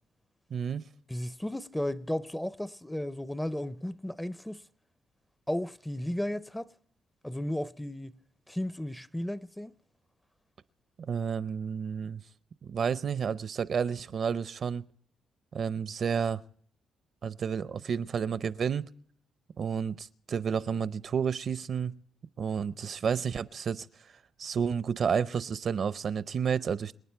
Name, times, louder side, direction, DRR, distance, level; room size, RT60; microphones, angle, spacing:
voice 1, 0.5-0.8 11.0-12.2 12.6-14.8 15.5-16.4 17.2-18.9 19.6-21.9 22.4-23.9 24.4-27.0, right 7 dB, 55° right, 0.6 m, -31 dB
voice 2, 1.1-4.6 5.5-6.7 7.2-8.1 8.5-9.7, left 1 dB, 5° left, 0.5 m, -34 dB
27.5 x 9.3 x 4.5 m
cardioid pair, 90°, 0 cm